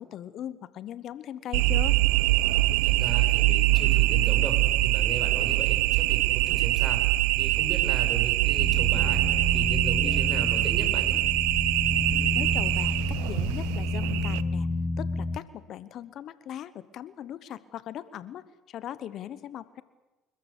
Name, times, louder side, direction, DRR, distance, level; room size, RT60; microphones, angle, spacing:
voice 1, 0.0-2.0 12.3-14.7 15.0-19.8, left 11 dB, 60° left, 16 dB, 1.1 m, -39 dB
sound 1, 1.5-14.4, right 17 dB, 85° right, 0.7 m, -24 dB
voice 2, 2.8-4.6 4.8-7.0 7.4-11.2, right 4 dB, 35° right, 5 dB, 6.0 m, -37 dB
sound 2, 8.6-15.4, left 2 dB, 25° left, 1.1 m, -31 dB
30.0 x 13.5 x 8.3 m, 1.1 s
supercardioid pair, 80°, 0 cm